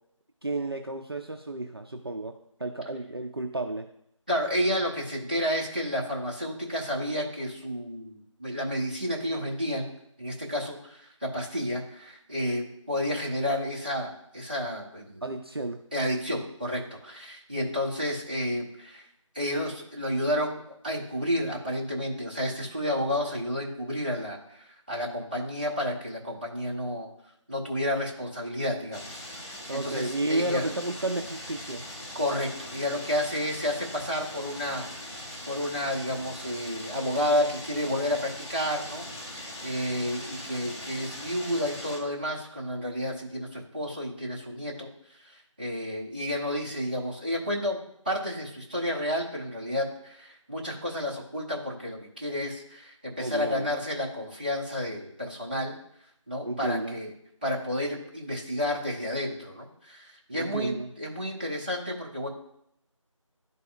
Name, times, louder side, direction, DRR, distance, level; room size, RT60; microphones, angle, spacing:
voice 1, 0.4-2.3 2.6-3.9 15.2-15.8 29.7-31.8 53.2-53.7 56.4-56.9 60.3-60.9, right 2 dB, 50° right, 4 dB, 0.4 m, -32 dB
voice 2, 4.3-9.9 10.2-15.2 15.9-19.1 19.3-27.1 27.5-30.6 32.1-34.9 35.5-47.8 48.0-55.8 56.3-57.1 57.4-62.3, equal, 15° right, -5 dB, 0.8 m, -31 dB
sound 1, 28.9-42.0, left 1 dB, 55° left, 1.7 m, -41 dB
11.5 x 4.1 x 2.5 m, 0.74 s
figure-of-eight pair, 165°, 17 cm